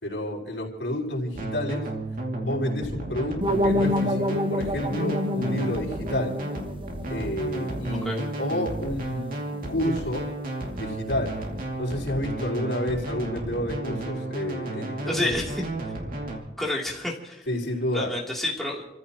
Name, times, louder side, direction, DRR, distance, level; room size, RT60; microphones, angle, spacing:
voice 1, 0.0-1.9 2.4-6.4 7.1-10.3 10.7-11.4 11.8-15.4 17.5-18.1, left 1 dB, 80° left, -2 dB, 4.8 m, -30 dB
sound 1, 1.3-16.4, right 1 dB, 55° right, 2.5 m, -33 dB
sound 2, 3.4-8.3, left 1 dB, 30° right, 0.8 m, -28 dB
voice 2, 15.1-15.6 16.6-17.4 17.9-18.9, left 1 dB, ahead, -4 dB, 3.1 m, -29 dB
29.5 x 15.0 x 3.0 m, 0.91 s
head